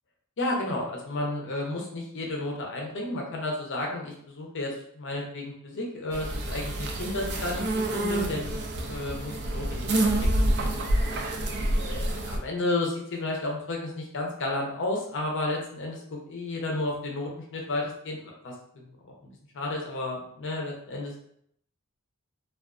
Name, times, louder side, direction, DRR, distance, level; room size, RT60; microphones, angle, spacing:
voice 1, 0.4-8.6 8.9-10.4 11.8-18.9 19.5-21.1, left 2 dB, 55° left, -1 dB, 0.6 m, -32 dB
sound 1, 6.1-12.4, right 1 dB, 50° right, 0.4 m, -27 dB
2.4 x 2.4 x 2.3 m, 0.68 s
head